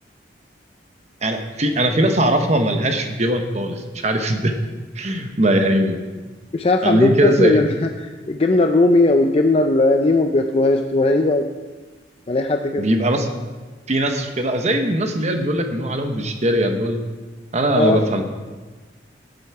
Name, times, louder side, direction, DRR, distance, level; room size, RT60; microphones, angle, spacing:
voice 1, 1.2-4.5 4.9-6.0 6.8-7.6 12.8-13.3 13.9-17.0 17.5-18.2, right 1 dB, 40° right, 5 dB, 1.0 m, -20 dB
voice 2, 6.5-11.4 12.3-12.9 17.7-18.0, left 2 dB, 35° left, 5 dB, 0.5 m, -18 dB
12.5 x 7.8 x 4.8 m, 1.3 s
head